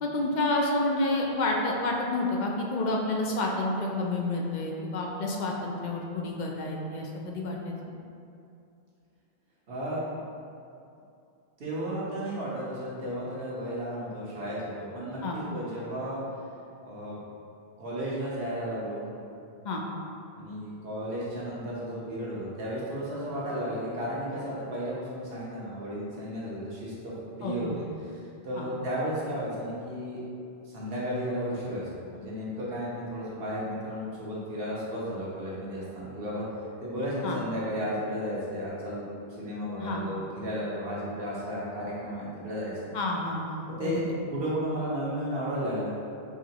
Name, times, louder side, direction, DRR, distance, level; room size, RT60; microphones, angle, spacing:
voice 1, 0.0-7.7 15.2-15.4 19.6-19.8 27.4-27.8 28.6-28.7 37.2-37.4 39.8-40.0 42.9-44.0, left 2 dB, 55° left, -1 dB, 0.6 m, -29 dB
voice 2, 9.7-10.0 11.6-16.2 16.8-17.2 17.8-19.0 20.4-27.7 28.0-30.2 30.6-31.8 32.1-36.4 36.8-39.1 39.4-42.9 43.8-45.9, equal, 70° right, -7 dB, 1.2 m, -33 dB
4.8 x 3.1 x 2.8 m, 2.6 s
omnidirectional pair, 1.0 m